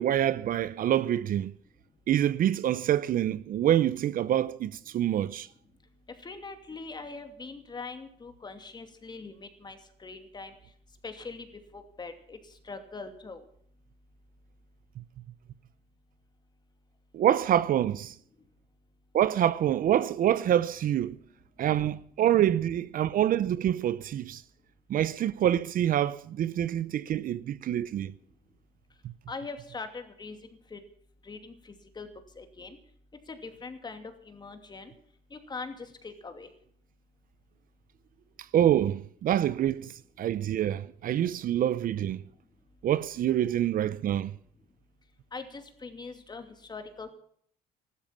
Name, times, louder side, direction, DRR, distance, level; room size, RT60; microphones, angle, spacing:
voice 1, 0.0-1.5 2.1-5.5 17.1-18.1 19.1-21.2 21.6-24.4 24.9-28.1 38.5-42.2 42.8-44.3, right 11 dB, 55° right, 0.7 m, -26 dB
voice 2, 6.2-10.5 11.0-11.5 11.7-12.4 12.6-13.4 29.3-30.4 30.7-30.8 31.2-32.1 32.4-32.8 33.3-34.9 35.3-36.5 45.3-47.1, left 4 dB, 25° left, 2.6 m, -42 dB
14.5 x 12.5 x 7.4 m
cardioid pair, 110°, 17 cm